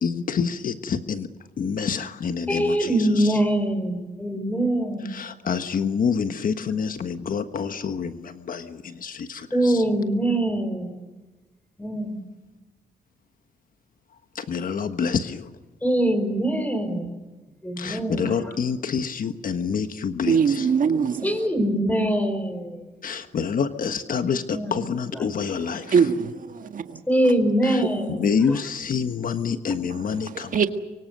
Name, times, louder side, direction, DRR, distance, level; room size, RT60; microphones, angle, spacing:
voice 1, 0.0-1.3 1.6-3.4 5.0-9.8 14.3-15.5 17.8-20.7 23.0-26.1 27.6-27.8 28.2-30.7, left 6 dB, 60° left, 1.4 m, -27 dB
voice 2, 2.5-5.1 9.5-10.9 11.8-12.2 15.8-17.1 17.6-18.5 21.2-22.8 24.5-24.7 25.1-25.2 27.1-28.3, right 1 dB, 10° left, 4.9 m, -23 dB
voice 3, 20.3-21.3 25.9-26.7 30.5-30.7, right 6 dB, 55° right, 1.6 m, -21 dB
25.0 x 24.0 x 6.8 m
cardioid pair, 110°, 16 cm